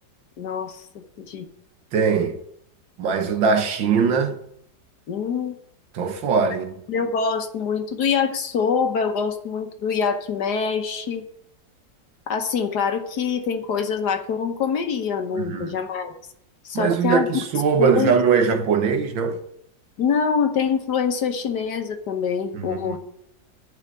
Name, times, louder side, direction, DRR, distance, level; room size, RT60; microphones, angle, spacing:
voice 1, 0.4-1.5 5.1-5.6 6.9-11.2 12.3-16.1 16.6-17.3 17.8-18.2 20.0-23.0, left 6 dB, 65° left, 1.5 m, -25 dB
voice 2, 1.9-2.4 3.0-4.4 5.9-6.7 15.3-15.8 16.7-19.4 22.5-23.0, right 6 dB, 90° right, 1.9 m, -21 dB
11.0 x 5.7 x 8.5 m
omnidirectional pair, 2.0 m